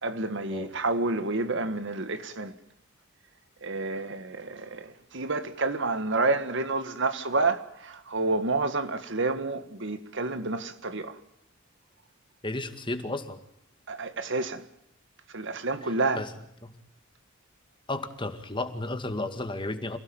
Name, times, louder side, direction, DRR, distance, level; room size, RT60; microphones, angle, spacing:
voice 1, 0.0-2.5 3.6-11.2 13.9-14.7 15.3-16.3, right 3 dB, 60° right, 1.8 m, -29 dB
voice 2, 12.4-13.4 16.2-16.3 16.6-16.7 17.9-20.0, left 2 dB, 25° left, 2.1 m, -33 dB
28.0 x 17.5 x 9.0 m
head